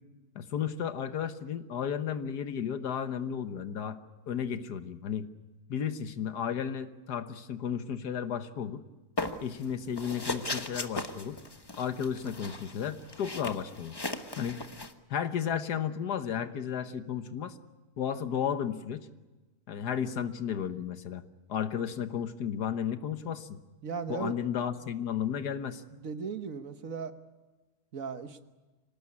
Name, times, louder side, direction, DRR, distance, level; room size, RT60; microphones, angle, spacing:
voice 1, 0.3-4.0 4.3-5.3 5.7-8.8 9.4-11.4 11.8-14.0 14.4-14.6 15.1-17.5 18.0-19.1 19.7-21.2 21.5-23.6 24.1-25.8, left 8 dB, 85° left, 10 dB, 1.7 m, -33 dB
sound 1, 9.2-9.6 10.0-14.9, left 2 dB, 15° left, 1.0 m, -37 dB
voice 2, 23.8-24.4 26.0-27.1 27.9-28.4, right 5 dB, 60° right, 9 dB, 1.6 m, -36 dB
25.5 x 18.5 x 9.6 m, 1.2 s
omnidirectional pair, 1.7 m